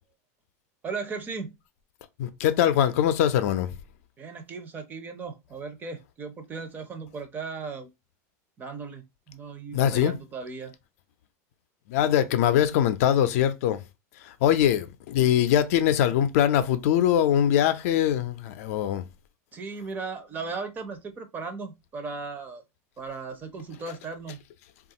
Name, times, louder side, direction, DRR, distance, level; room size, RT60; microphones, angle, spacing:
voice 1, 0.8-1.5 4.2-7.9 8.6-10.7 19.5-22.6 23.0-24.4, right 4 dB, 20° right, 0.5 m, -37 dB
voice 2, 2.2-3.7 9.7-10.1 11.9-13.8 14.2-19.0, left 10 dB, 65° left, 0.4 m, -22 dB
3.1 x 2.4 x 2.7 m
supercardioid pair, 145°, 8 cm